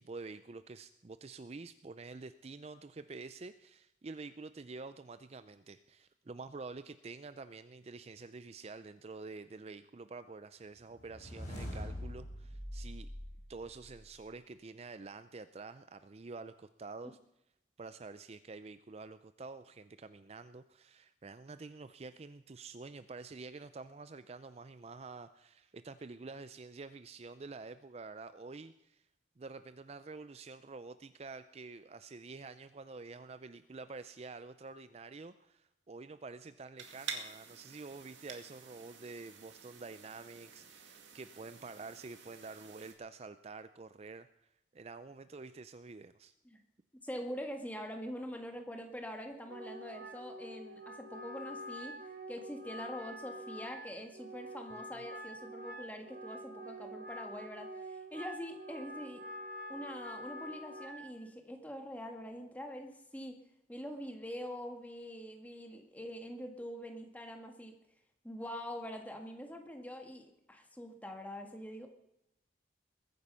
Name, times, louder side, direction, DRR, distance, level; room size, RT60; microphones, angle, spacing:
voice 1, 0.0-13.1 13.5-17.2 17.8-29.1 29.4-46.3, right 3 dB, 35° right, 12 dB, 0.4 m, -48 dB
sound 1, 10.9-14.2, equal, 40° left, 4.9 m, -44 dB
sound 2, 36.8-42.9, right 6 dB, 85° right, 2.1 m, -49 dB
voice 2, 47.0-52.0 52.3-59.2 59.7-63.4 63.7-67.7 68.2-71.9, equal, 10° left, 4 dB, 1.8 m, -44 dB
Wind instrument woodwind instrument, 49.5-61.1, equal, 50° right, 1.3 m, -46 dB
21.5 x 9.5 x 5.6 m, 0.83 s
head